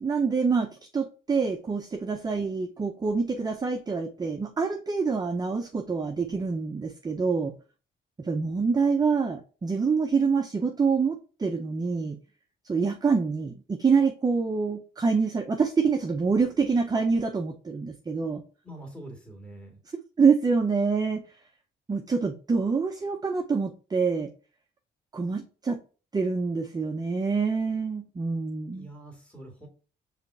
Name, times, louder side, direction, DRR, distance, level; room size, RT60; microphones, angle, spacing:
voice 1, 0.0-7.5 8.2-12.2 12.6-18.4 20.2-21.3 21.9-24.3 25.1-25.8 26.1-28.9, right 5 dB, 20° right, 5 dB, 0.5 m, -26 dB
voice 2, 18.6-19.8 28.7-29.7, right 1 dB, 5° left, 1 dB, 1.8 m, -44 dB
5.1 x 3.2 x 2.6 m, 0.35 s
cardioid pair, 90°, 20 cm